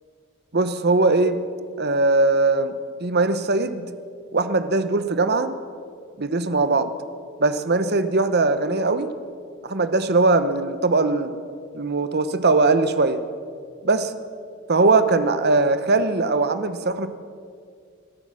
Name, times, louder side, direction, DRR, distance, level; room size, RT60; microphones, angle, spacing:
voice 1, 0.5-1.4 1.8-2.7 3.0-3.9 4.3-5.6 6.2-6.9 7.4-9.1 9.6-11.3 11.7-13.2 13.8-14.1 14.7-17.1, right 3 dB, 45° right, 11 dB, 0.9 m, -20 dB
25.5 x 8.8 x 6.3 m, 2.2 s
head